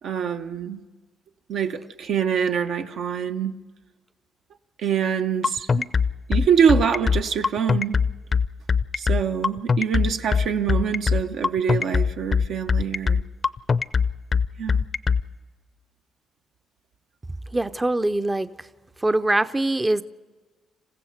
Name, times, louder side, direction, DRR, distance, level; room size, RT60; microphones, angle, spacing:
voice 1, 0.0-0.8 1.5-3.6 4.8-5.9 6.3-8.0 9.0-13.3 14.6-14.8, right 7 dB, 75° right, 1.0 m, -24 dB
sound 1, 5.4-15.2, left 5 dB, 40° left, 0.5 m, -21 dB
voice 2, 17.5-18.7 19.0-20.0, right 2 dB, 15° right, 0.6 m, -23 dB
28.0 x 15.5 x 6.6 m
cardioid pair, 90°, 0 cm